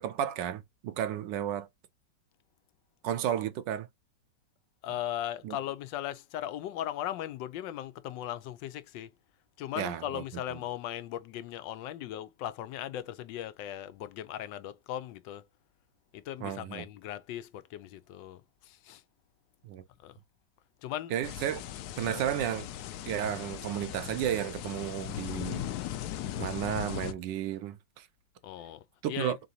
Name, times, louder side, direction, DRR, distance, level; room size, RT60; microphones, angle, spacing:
voice 1, 0.0-1.7 3.0-3.9 5.4-5.6 9.8-10.2 16.4-16.8 19.6-19.8 21.1-21.6 22.0-22.7 23.0-25.7 26.4-28.1 29.0-29.4, right 10 dB, 80° right, 1.3 m, -33 dB
voice 2, 4.8-9.1 9.6-15.5 16.1-19.0 20.0-20.2 20.8-21.1 22.0-22.2 28.4-29.4, left 12 dB, 90° left, 1.3 m, -38 dB
sound 1, 21.2-27.1, left 11 dB, 70° left, 1.0 m, -38 dB
3.9 x 3.8 x 2.7 m
omnidirectional pair, 1.9 m